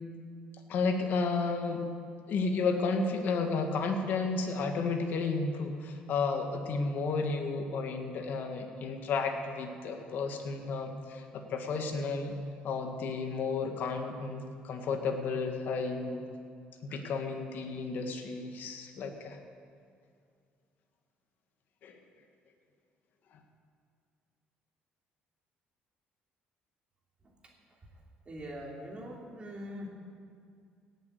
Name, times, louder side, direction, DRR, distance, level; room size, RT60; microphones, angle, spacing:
voice 1, 0.7-1.8 2.3-12.3 12.6-16.2 16.8-19.4 21.8-22.0, left 4 dB, 60° left, 5 dB, 1.7 m, -32 dB
voice 2, 27.2-27.5 27.8-27.9 28.2-29.9, equal, 30° right, -2 dB, 3.0 m, -43 dB
17.5 x 7.2 x 8.1 m, 2.3 s
cardioid pair, 115°, 4 cm